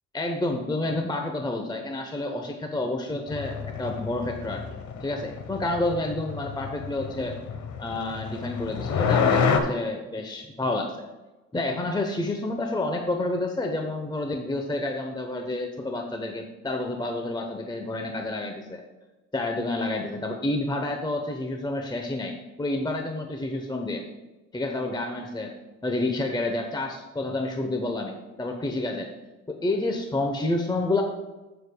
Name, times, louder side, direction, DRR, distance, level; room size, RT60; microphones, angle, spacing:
voice 1, 0.1-4.6 5.0-7.4 7.8-11.0 11.5-18.8 19.3-24.0 24.5-25.5 25.8-29.1 29.5-31.0, left 2 dB, 15° left, 3 dB, 0.8 m, -29 dB
sound 1, 3.3-9.6, left 6 dB, 70° left, 1.0 m, -28 dB
14.5 x 6.8 x 2.2 m, 1.1 s
cardioid pair, 90°, 30 cm